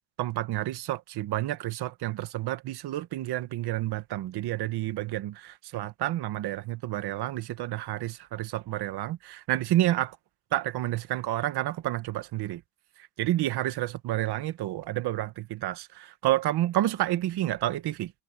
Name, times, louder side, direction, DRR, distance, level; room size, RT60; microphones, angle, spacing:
voice 1, 0.2-10.1 10.5-12.6 13.2-18.1, right 14 dB, 50° right, 1.4 m, -29 dB
cardioid pair, 150°, 48 cm